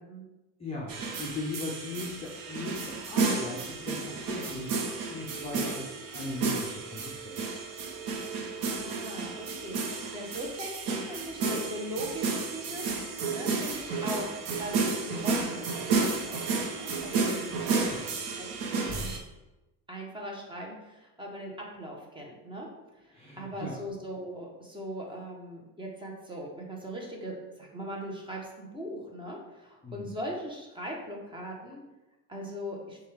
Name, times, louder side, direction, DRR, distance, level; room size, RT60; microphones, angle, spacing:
voice 1, 0.6-4.8 5.1-7.7 17.6-18.0 23.1-23.8 29.8-30.1, left 2 dB, 15° left, -3 dB, 0.5 m, -39 dB
sound 1, 0.9-19.2, right 4 dB, 60° right, 0.8 m, -32 dB
voice 2, 8.7-18.5 18.7-19.1 19.9-22.7 23.0-31.8 32.3-33.0, equal, 15° right, -1 dB, 0.8 m, -40 dB
6.3 x 2.4 x 3.2 m, 1.0 s
cardioid pair, 140°, 39 cm